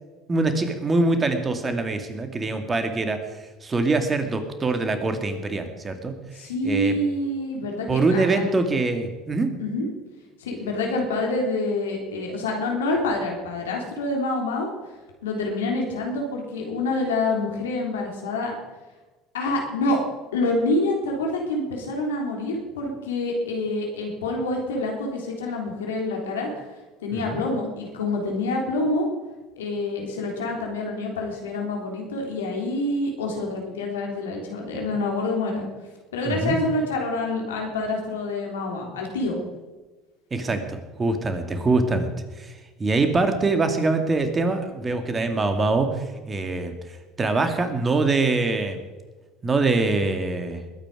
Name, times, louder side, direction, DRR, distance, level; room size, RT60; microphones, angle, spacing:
voice 1, 0.3-6.1 6.6-6.9 7.9-9.5 27.1-27.4 36.2-36.6 40.3-42.1 42.4-48.8 49.4-50.6, right 3 dB, 25° right, 7 dB, 2.4 m, -24 dB
voice 2, 6.4-8.5 9.6-9.9 10.4-14.7 15.2-18.5 19.3-20.0 20.3-26.5 27.0-29.1 29.6-35.7 36.1-39.4, left 2 dB, 80° left, 0 dB, 3.5 m, -27 dB
21.0 x 9.5 x 5.0 m, 1.2 s
hypercardioid pair, 70°, 0 cm